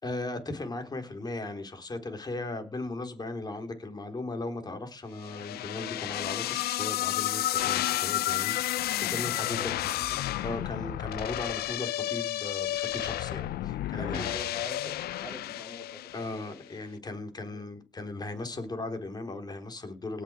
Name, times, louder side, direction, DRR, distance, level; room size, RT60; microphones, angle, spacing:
voice 1, 0.0-9.9 10.4-14.4 16.1-20.2, left 2 dB, 25° left, 3.6 m, -37 dB
sound 1, 5.2-16.5, left 14 dB, 65° left, 0.7 m, -31 dB
voice 2, 9.5-10.6 13.9-16.6 17.5-17.7, equal, 5° left, 4.4 m, -45 dB
18.5 x 6.6 x 5.0 m
cardioid pair, 110°, 17 cm